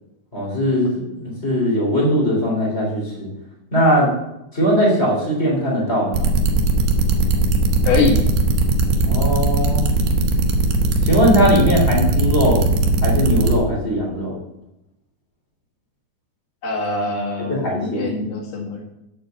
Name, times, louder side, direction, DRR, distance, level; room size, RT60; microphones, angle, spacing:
voice 1, 0.3-3.3 3.7-4.1 4.5-6.2 9.0-9.8 11.0-12.6 13.0-14.4 17.5-18.2, equal, 15° left, -3 dB, 3.5 m, -19 dB
sound 1, 6.1-13.6, right 3 dB, 70° right, 3.1 m, -18 dB
voice 2, 7.9-8.2 16.6-18.8, left 3 dB, 65° left, -1 dB, 3.7 m, -23 dB
9.0 x 7.7 x 7.1 m, 0.87 s
omnidirectional pair, 5.0 m